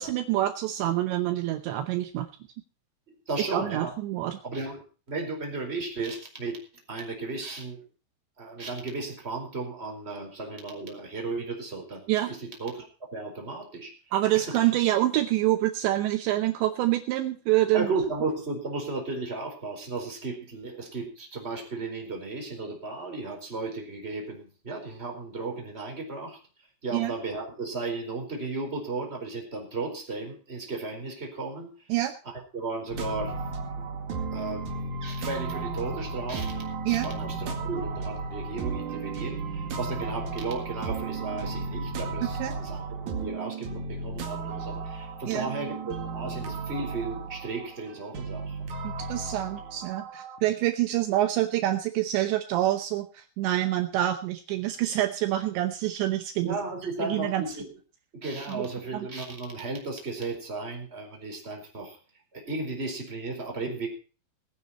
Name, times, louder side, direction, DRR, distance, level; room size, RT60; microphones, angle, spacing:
voice 1, 0.0-2.3 3.5-4.4 12.1-12.3 14.1-17.9 26.9-27.1 31.9-32.1 36.9-37.1 42.2-42.5 45.3-45.5 48.8-56.6 57.0-57.4 58.5-58.6 58.9-59.1, right 14 dB, 75° right, 7 dB, 3.0 m, -26 dB
voice 2, 3.1-3.9 4.4-4.8 5.1-6.6 6.9-7.8 8.4-12.8 13.1-13.9 14.3-14.7 17.7-26.4 26.8-31.7 32.2-33.4 33.7-33.9 34.3-48.6 56.4-57.7 58.1-62.0 62.3-63.9, right 3 dB, 15° right, 1 dB, 4.0 m, -35 dB
sound 1, 32.9-50.4, right 4 dB, 50° right, 3.0 m, -34 dB
20.5 x 9.6 x 4.2 m, 0.37 s
omnidirectional pair, 5.5 m